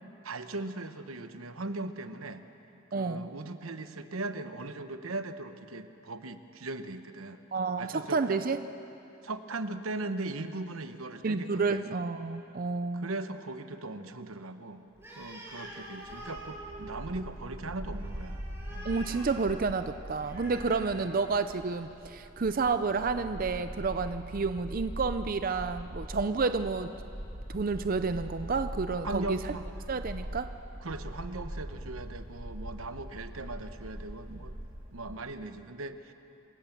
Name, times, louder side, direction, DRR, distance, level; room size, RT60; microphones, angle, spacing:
voice 1, 0.2-2.4 2.9-7.4 7.8-8.4 9.2-12.0 12.9-14.8 15.1-18.4 18.7-18.9 29.0-29.6 30.8-34.5 34.9-36.1, right 2 dB, 85° right, 9 dB, 1.0 m, -39 dB
voice 2, 2.9-3.3 7.5-8.6 11.2-13.1 18.8-26.9 27.5-29.5 29.9-30.5, right 4 dB, 40° right, 10 dB, 0.5 m, -30 dB
Animal, 14.9-21.7, right 1 dB, 10° right, 7.0 m, -47 dB
Bark, 16.0-35.1, equal, 70° right, 3.0 m, -42 dB
27.0 x 16.0 x 7.3 m, 2.9 s
head